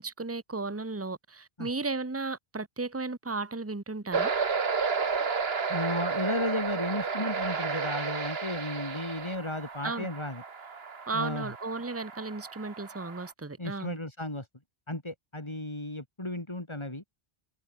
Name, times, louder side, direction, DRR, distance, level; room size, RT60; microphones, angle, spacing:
voice 1, 0.0-4.3 9.8-10.1 11.1-14.0, right 3 dB, 15° right, 1.2 m, -34 dB
sound 1, 4.1-13.3, right 5 dB, 70° right, 1.8 m, -32 dB
voice 2, 5.7-10.4 11.1-11.5 13.6-14.5 14.9-17.0, left 1 dB, 25° left, 3.0 m, -34 dB
omnidirectional pair, 1.1 m